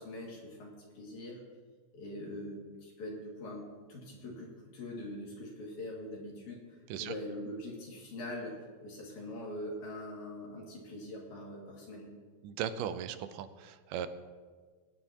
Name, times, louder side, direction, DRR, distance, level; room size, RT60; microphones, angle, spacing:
voice 1, 0.0-1.4 1.9-6.6 7.0-12.1, left 1 dB, 65° left, -3 dB, 3.5 m, -43 dB
voice 2, 12.4-14.1, right 9 dB, 90° right, 11 dB, 2.3 m, -37 dB
20.0 x 9.4 x 2.9 m, 1.5 s
omnidirectional pair, 3.7 m